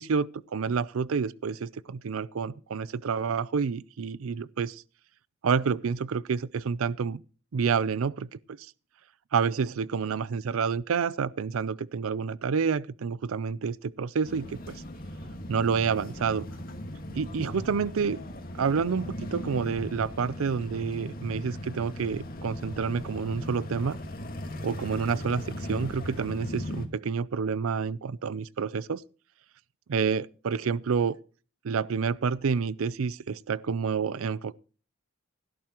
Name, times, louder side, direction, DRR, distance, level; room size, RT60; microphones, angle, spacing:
voice 1, 0.0-4.8 5.4-7.2 7.5-8.7 9.3-14.8 15.5-16.5 17.1-18.2 18.6-24.0 24.6-29.0 29.9-31.2 31.6-34.6, right 6 dB, 85° right, 0.5 m, -29 dB
sound 1, 14.2-26.9, left 1 dB, 45° left, 1.8 m, -38 dB
17.0 x 11.0 x 3.0 m
head